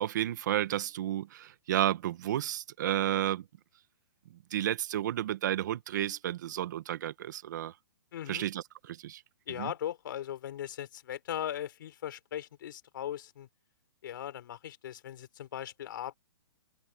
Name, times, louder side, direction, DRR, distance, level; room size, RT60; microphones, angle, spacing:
voice 1, 0.0-3.4 4.5-7.7 8.3-9.2 9.6-9.7, right 12 dB, 45° right, 1.5 m, -32 dB
voice 2, 8.1-8.5 9.5-13.5 14.0-16.1, left 11 dB, 50° left, 4.1 m, -39 dB
hypercardioid pair, 165°, 14 cm